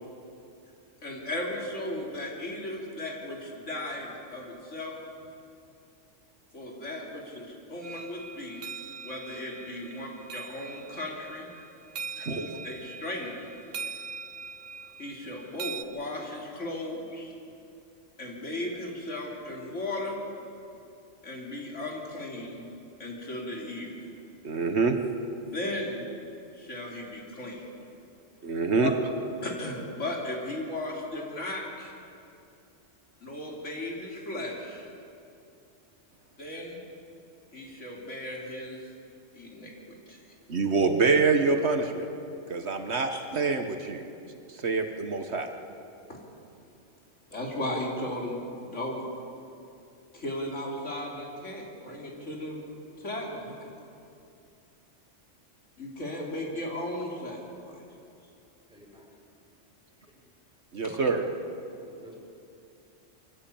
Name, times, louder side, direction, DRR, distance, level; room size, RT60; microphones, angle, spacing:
voice 1, 1.0-5.0 6.5-8.6 9.0-11.5 12.3-13.5 15.0-17.3 18.2-20.2 21.2-22.6 23.0-24.1 25.5-26.0 26.6-27.7 28.8-28.9 29.4-31.9 33.2-34.9 36.4-36.8 37.5-38.8 39.3-40.2 43.1-43.2 46.1-46.2 47.3-48.4 48.7-49.0 50.1-52.6 53.0-53.5 55.8-57.4 57.6-57.8 60.8-61.0, left 1 dB, 75° left, -2 dB, 3.8 m, -36 dB
sound 1, 7.8-15.8, right 5 dB, 80° right, 1.4 m, -42 dB
voice 2, 24.4-25.0 28.4-28.9 40.5-42.1 42.5-44.1 44.5-45.5 60.7-61.2, right 4 dB, 60° right, 6 dB, 1.5 m, -26 dB
voice 3, 58.7-59.1 60.0-60.2 61.8-62.2, equal, 5° right, -3 dB, 5.3 m, -52 dB
23.0 x 15.5 x 8.6 m, 2.6 s
omnidirectional pair, 1.3 m